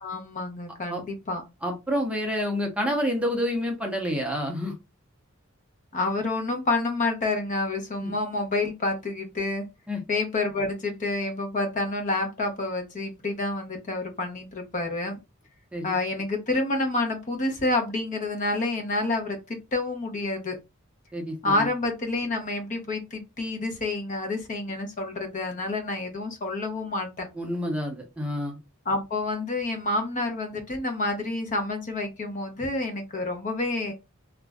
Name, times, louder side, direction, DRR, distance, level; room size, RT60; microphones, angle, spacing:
voice 1, 0.0-1.4 5.9-9.7 10.1-15.2 15.8-20.6 21.4-27.3 28.9-33.9, left 2 dB, 40° left, 0.7 m, -28 dB
voice 2, 1.6-4.7 8.0-8.1 9.9-10.0 15.7-15.9 21.1-21.7 27.3-28.6, equal, 5° right, 0.6 m, -28 dB
2.4 x 2.1 x 3.4 m
head